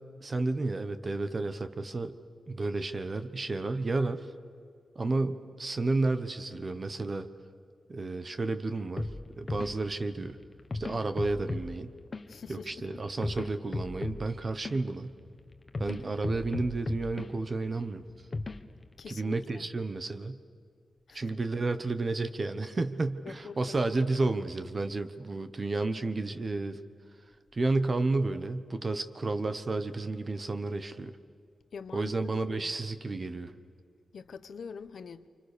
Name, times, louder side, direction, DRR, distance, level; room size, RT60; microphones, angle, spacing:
voice 1, 0.2-2.1 2.5-4.3 4.9-7.3 7.9-9.1 9.4-10.4 10.8-11.9 12.5-15.1 15.8-18.1 19.1-20.4 21.1-26.8 27.5-31.2 31.9-33.5, right 3 dB, 30° right, 1.1 m, -31 dB
sound 1, 9.0-19.1, left 3 dB, 30° left, 1.2 m, -39 dB
voice 2, 12.3-12.9 19.0-19.7 21.1-21.2 23.2-24.1 31.7-32.1 32.5-32.7 34.1-35.3, left 5 dB, 65° left, 1.0 m, -45 dB
29.5 x 27.0 x 6.8 m
wide cardioid pair, 155°, 0 cm